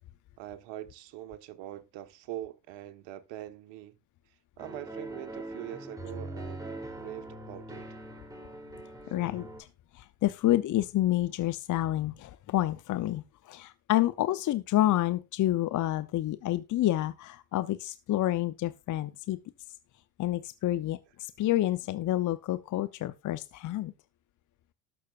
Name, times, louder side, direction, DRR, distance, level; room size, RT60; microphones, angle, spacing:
voice 1, 0.4-4.0 4.6-7.8, right 13 dB, 60° right, 1.3 m, -43 dB
sound 1, 4.6-9.6, right 1 dB, 5° right, 3.3 m, -42 dB
voice 2, 9.1-9.5 9.9-19.4 20.2-23.9, left 14 dB, 40° left, 0.8 m, -29 dB
19.5 x 6.6 x 2.5 m
hypercardioid pair, 65°, 49 cm